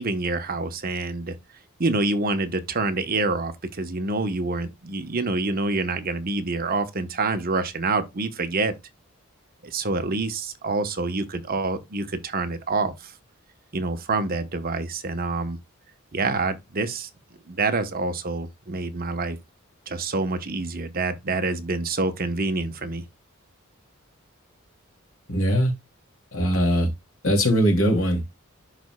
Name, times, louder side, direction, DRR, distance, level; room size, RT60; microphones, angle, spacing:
voice 1, 0.0-1.4 1.8-8.7 9.6-13.1 13.7-15.6 16.1-17.1 17.5-19.4 19.9-23.0, right 3 dB, 45° right, 1.0 m, -27 dB
voice 2, 25.3-25.7 26.3-26.9 27.2-28.3, equal, 80° left, 2.6 m, -21 dB
11.5 x 4.1 x 2.2 m
head